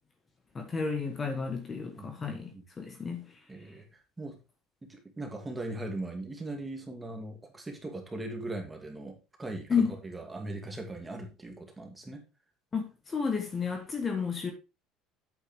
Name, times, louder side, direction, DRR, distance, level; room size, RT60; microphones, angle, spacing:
voice 1, 0.5-3.3 9.7-10.0 12.7-14.5, left 5 dB, 25° left, 1.5 m, -31 dB
voice 2, 1.9-2.6 3.5-4.4 4.8-12.2, right 2 dB, 10° right, 2.3 m, -40 dB
8.4 x 8.1 x 3.6 m
cardioid pair, 135°, 0 cm